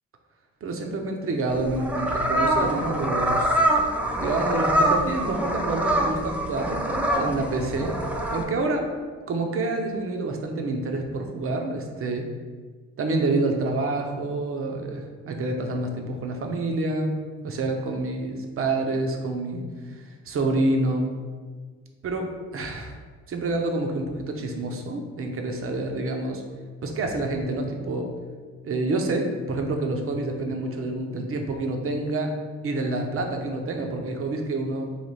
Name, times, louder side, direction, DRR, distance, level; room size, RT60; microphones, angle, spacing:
voice 1, 0.6-3.6 4.2-8.9 9.3-12.3 13.0-21.1 22.0-23.0 23.3-26.4 26.8-28.1 28.6-32.3 32.6-35.0, right 2 dB, 45° right, 3 dB, 0.7 m, -28 dB
sound 1, 1.5-8.4, right 1 dB, 5° right, 0.5 m, -24 dB
3.2 x 2.9 x 4.1 m, 1.5 s
cardioid pair, 90°, 30 cm